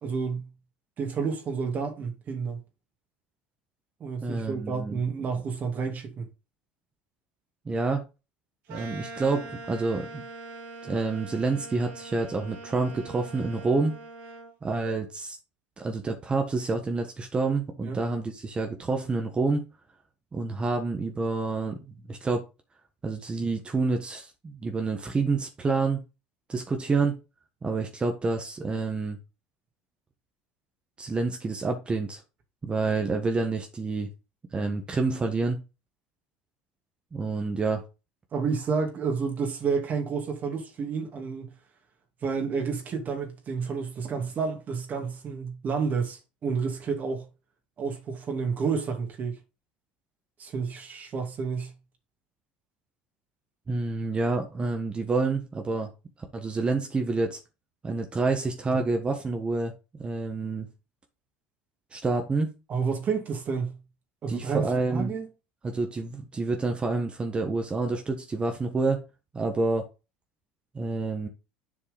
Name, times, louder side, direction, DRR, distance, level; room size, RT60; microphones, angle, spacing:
voice 1, 0.0-0.5 1.0-2.6 4.0-6.3 17.9-18.0 38.3-41.5 42.2-47.3 47.8-49.4 50.4-51.7 58.7-58.8 62.7-63.8 64.2-65.3, right 5 dB, 40° right, 2.3 m, -30 dB
voice 2, 4.2-5.0 7.6-8.0 8.7-10.2 10.8-14.0 14.6-15.4 15.8-19.6 20.3-22.4 23.0-26.0 26.5-27.2 27.6-29.2 31.0-32.2 32.6-34.1 34.5-35.6 37.1-37.8 53.7-55.9 56.3-57.4 57.8-59.7 60.0-60.7 61.9-62.5 64.3-65.1 65.6-69.0 69.3-69.9 70.7-71.3, right 3 dB, 25° right, 1.4 m, -28 dB
sound 1, 8.7-14.5, right 3 dB, 70° right, 3.5 m, -43 dB
7.4 x 4.5 x 5.2 m
hypercardioid pair, 80°, 4 cm